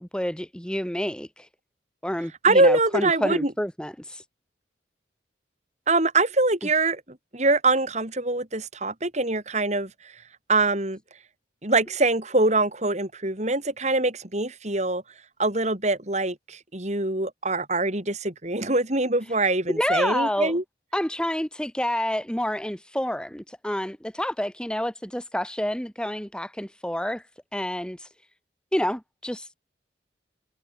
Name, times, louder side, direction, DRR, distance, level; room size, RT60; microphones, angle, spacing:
voice 1, 0.0-1.5 2.0-4.2 19.7-20.5 20.9-27.2 27.5-28.1 28.7-29.5, left 1 dB, 5° left, 1.2 m, -28 dB
voice 2, 2.4-3.5 5.9-10.2 10.5-11.0 11.6-15.0 15.4-20.6, right 2 dB, 40° right, 3.9 m, -24 dB
head